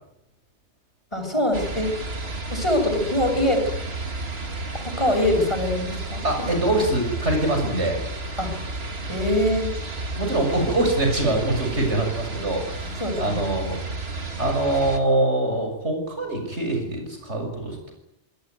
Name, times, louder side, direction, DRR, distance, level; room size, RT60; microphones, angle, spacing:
voice 1, 1.1-1.9 2.5-3.7 4.7-6.5 8.4-8.5 9.1-9.7 12.8-13.4, left 1 dB, 25° left, 4 dB, 6.8 m, -23 dB
sound 1, 1.5-15.0, right 2 dB, 65° right, 2.5 m, -32 dB
voice 2, 6.2-8.0 10.2-13.8 14.4-17.9, right 1 dB, 90° right, 4 dB, 7.2 m, -24 dB
26.0 x 19.0 x 9.5 m, 0.85 s
omnidirectional pair, 1.1 m